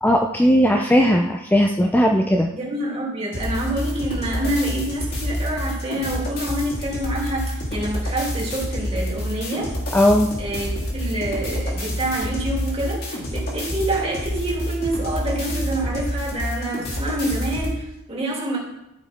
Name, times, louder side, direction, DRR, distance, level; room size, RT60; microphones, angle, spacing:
voice 1, 0.0-2.5 9.9-10.3, equal, 10° left, 1 dB, 0.5 m, -17 dB
voice 2, 2.5-9.7 10.4-18.6, right 1 dB, 30° right, -4 dB, 2.6 m, -27 dB
sound 1, 3.3-17.8, equal, 50° left, 2.2 m, -28 dB
12.5 x 5.2 x 4.3 m, 0.89 s
head